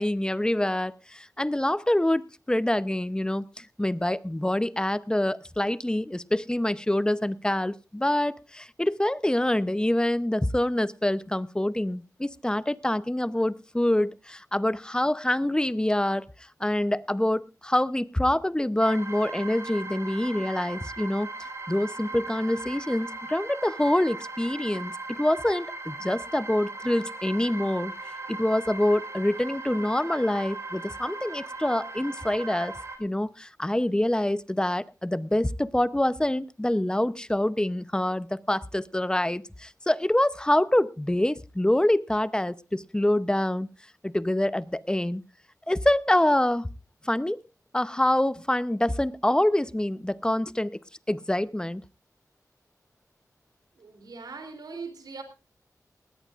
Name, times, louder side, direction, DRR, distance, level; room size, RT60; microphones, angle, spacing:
voice 1, 0.0-16.2 16.6-21.3 21.7-27.9 28.3-43.7 44.0-45.2 45.7-46.7 47.0-47.4 47.7-50.8 51.1-51.8, left 1 dB, 10° left, 16 dB, 0.7 m, -26 dB
sound 1, 18.8-33.0, right 3 dB, 45° right, 4.1 m, -38 dB
voice 2, 53.8-55.2, right 4 dB, 85° right, 6 dB, 3.3 m, -40 dB
19.5 x 17.0 x 2.5 m, 0.29 s
cardioid pair, 60°, 7 cm